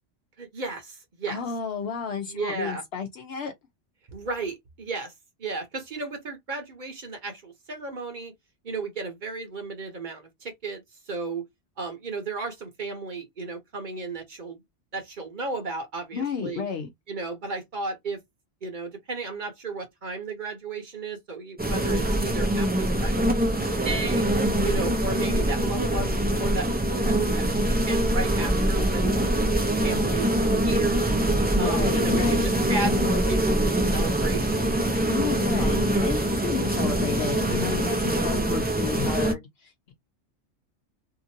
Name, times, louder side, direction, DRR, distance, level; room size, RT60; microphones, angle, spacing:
voice 1, 0.4-1.4 2.3-2.8 4.1-5.1 5.4-8.3 8.6-11.5 11.8-14.6 14.9-16.6 17.1-18.2 18.6-24.2 24.6-26.7 27.0-29.1 29.4-31.0 31.6-34.7 35.5-35.9, right 3 dB, 45° right, 0.9 m, -34 dB
voice 2, 1.3-3.5 16.1-16.9 24.5-24.8 31.5-32.5 35.1-39.9, left 7 dB, 70° left, 0.8 m, -32 dB
sound 1, 21.6-39.3, right 1 dB, 15° right, 0.3 m, -24 dB
2.8 x 2.5 x 2.6 m
omnidirectional pair, 1.2 m